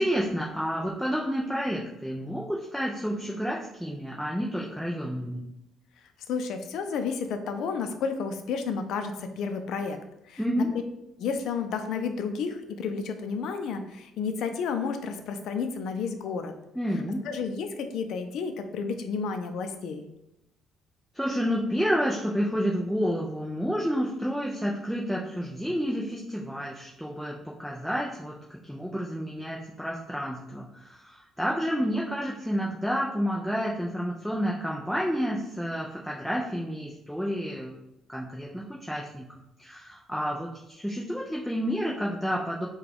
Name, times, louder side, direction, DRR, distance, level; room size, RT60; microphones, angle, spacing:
voice 1, 0.0-5.4 10.4-10.7 16.7-17.2 21.1-28.4 28.6-37.8 38.1-39.3 39.6-42.7, equal, ahead, -3 dB, 0.4 m, -30 dB
voice 2, 6.3-10.0 10.3-10.4 11.2-16.5 17.2-20.1, left 5 dB, 65° left, 7 dB, 0.5 m, -31 dB
5.9 x 2.3 x 3.4 m, 0.87 s
cardioid pair, 160°, 0 cm